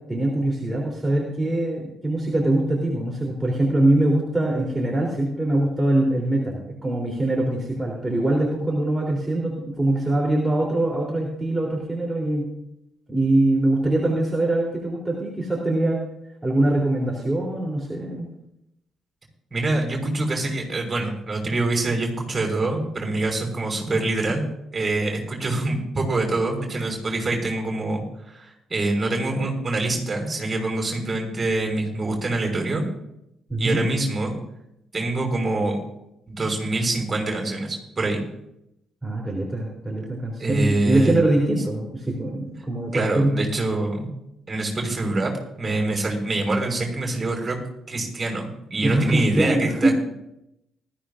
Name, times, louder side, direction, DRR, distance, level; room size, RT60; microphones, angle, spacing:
voice 1, 0.1-12.5 13.1-16.0 16.4-18.3 33.5-33.8 39.0-43.5 48.8-49.9, right 1 dB, 10° right, -3 dB, 3.4 m, -23 dB
voice 2, 19.5-24.4 24.7-32.9 33.6-34.3 34.9-35.8 36.3-38.2 40.4-41.1 42.9-44.1 44.5-45.3 45.6-47.6 47.9-49.9, right 2 dB, 30° right, 1 dB, 5.9 m, -25 dB
20.0 x 13.5 x 2.5 m, 0.82 s
figure-of-eight pair, 45°, 0 cm